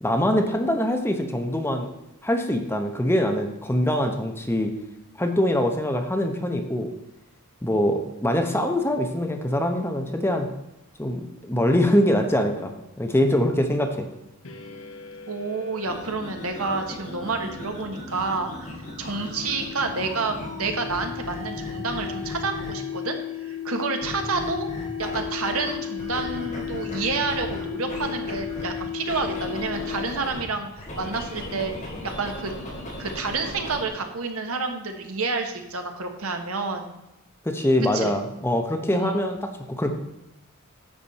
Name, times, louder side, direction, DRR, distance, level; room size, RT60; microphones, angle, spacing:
voice 1, 0.0-1.9 2.2-4.7 5.2-6.9 7.6-10.5 11.0-14.1 37.4-39.4 39.7-39.9, left 1 dB, 10° left, 4 dB, 0.9 m, -23 dB
sound 1, 14.4-30.4, left 9 dB, 65° left, 1.0 m, -36 dB
voice 2, 15.3-18.7 19.0-24.7 25.0-30.7 31.0-32.5 33.0-36.9 37.9-38.1 38.9-39.3, right 4 dB, 70° right, 5 dB, 1.3 m, -29 dB
sound 2, 15.8-23.0 24.0-25.7 26.0-30.4 30.8-33.9, left 1 dB, 35° left, 2.9 m, -37 dB
10.5 x 7.2 x 4.1 m, 0.93 s
head